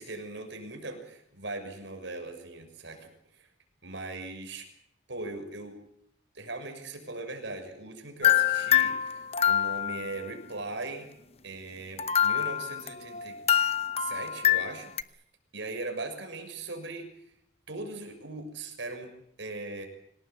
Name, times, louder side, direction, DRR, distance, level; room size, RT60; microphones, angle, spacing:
voice 1, 0.0-3.5 3.8-4.7 5.1-5.8 6.3-11.1 11.4-13.4 14.0-14.9 15.5-17.1 17.7-19.1 19.4-19.9, right 2 dB, 65° right, 5 dB, 6.4 m, -39 dB
sound 1, 8.2-10.1 12.0-15.0, left 10 dB, 30° left, 0.9 m, -25 dB
26.0 x 18.5 x 8.3 m, 0.73 s
head